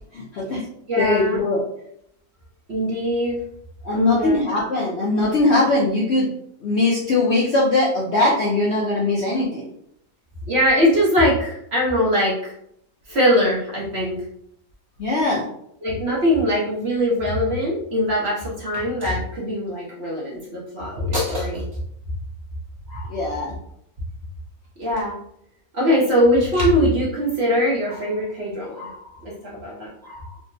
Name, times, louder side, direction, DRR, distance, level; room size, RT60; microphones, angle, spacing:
voice 1, 0.1-0.6 1.0-1.6 3.8-6.3 6.6-9.7 15.0-15.5 23.1-23.5, left 2 dB, 65° left, -5 dB, 0.6 m, -20 dB
voice 2, 0.9-1.4 2.7-3.4 3.9-4.4 10.5-12.5 13.1-14.2 15.8-21.6 22.9-23.2 24.8-25.2 25.7-30.3, equal, 50° right, -5 dB, 0.8 m, -22 dB
3.6 x 2.0 x 2.6 m, 0.71 s
omnidirectional pair, 1.7 m